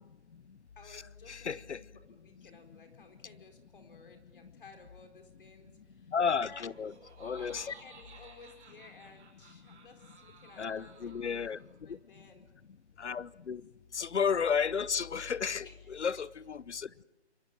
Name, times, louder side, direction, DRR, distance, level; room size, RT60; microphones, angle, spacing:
voice 1, 0.8-6.1 6.4-6.7 7.4-11.6 11.8-12.5 15.6-15.9, left 4 dB, 50° left, 4.5 m, -55 dB
voice 2, 1.3-1.8 6.1-6.9 7.2-7.7 10.6-11.6 11.9-12.0 13.0-13.6 13.9-17.0, left 6 dB, 80° left, 0.9 m, -33 dB
Laughter, 6.5-11.8, right 4 dB, 10° right, 5.7 m, -56 dB
26.5 x 23.5 x 7.6 m
hypercardioid pair, 170°, 34 cm